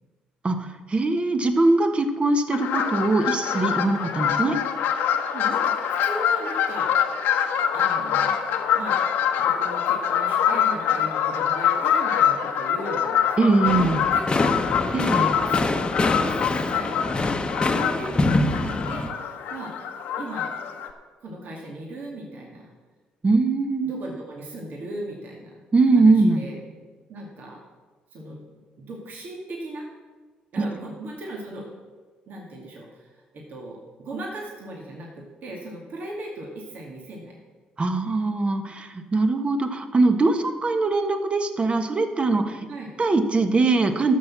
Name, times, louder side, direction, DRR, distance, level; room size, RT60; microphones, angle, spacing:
voice 1, 0.4-4.6 13.4-14.0 14.9-15.3 23.2-23.9 25.7-26.4 37.8-42.7 43.0-44.1, right 3 dB, 35° right, 7 dB, 1.4 m, -21 dB
sound 1, 2.5-20.9, left 8 dB, 75° left, 1.1 m, -25 dB
voice 2, 5.3-7.3 7.7-8.4 8.7-9.0 9.4-13.5 13.8-14.5 14.9-15.0 15.4-17.0 17.6-19.8 20.1-20.5 21.2-22.7 23.8-25.6 25.9-26.6 27.1-27.6 28.1-28.4 28.8-29.9 30.5-31.7 32.3-37.4 42.7-42.9, right 1 dB, 60° right, -2 dB, 2.2 m, -38 dB
sound 2, 13.6-19.1, left 2 dB, 25° left, 1.1 m, -25 dB
11.5 x 6.7 x 7.3 m, 1.4 s
hypercardioid pair, 55°, 3 cm